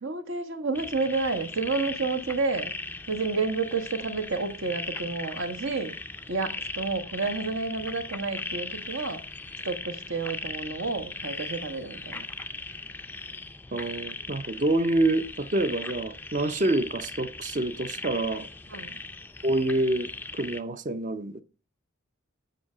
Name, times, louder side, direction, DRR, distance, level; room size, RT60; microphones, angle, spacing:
voice 1, 0.0-2.7 3.1-5.9 6.3-9.2 9.6-12.2 18.7-18.9, right 3 dB, 70° right, 1.2 m, -30 dB
sound 1, 0.7-20.6, left 3 dB, 10° left, 0.4 m, -38 dB
voice 2, 13.7-18.5 19.4-21.4, right 2 dB, 35° right, 0.6 m, -27 dB
9.1 x 5.4 x 4.9 m
head